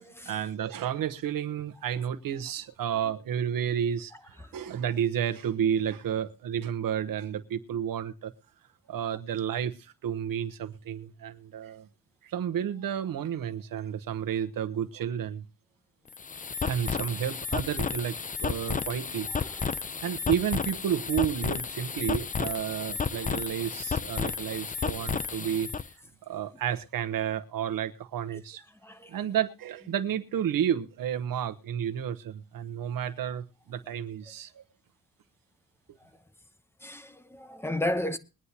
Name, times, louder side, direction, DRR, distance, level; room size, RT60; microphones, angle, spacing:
voice 1, 0.2-8.3 8.9-11.9 12.2-15.4 16.6-18.1 18.4-19.3 20.0-25.7 26.2-28.6 29.1-34.6, right 9 dB, 90° right, 1.1 m, -31 dB
sound 1, 16.1-25.9, left 5 dB, 25° left, 0.5 m, -32 dB
voice 2, 28.8-29.2 36.8-38.2, left 1 dB, 5° left, 0.9 m, -32 dB
22.0 x 9.8 x 2.9 m
wide cardioid pair, 135°, 33 cm